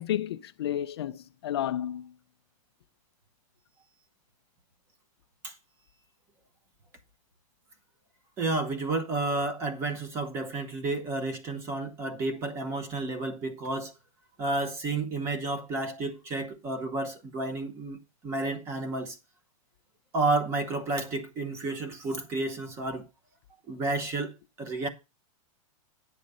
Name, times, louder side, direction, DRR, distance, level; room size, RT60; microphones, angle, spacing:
voice 1, 0.0-2.1, left 11 dB, 45° left, 0.4 m, -31 dB
voice 2, 8.4-13.9 14.4-19.2 20.1-23.0 23.7-24.9, right 2 dB, 15° right, 0.9 m, -31 dB
9.7 x 6.3 x 5.4 m
supercardioid pair, 175°, 18 cm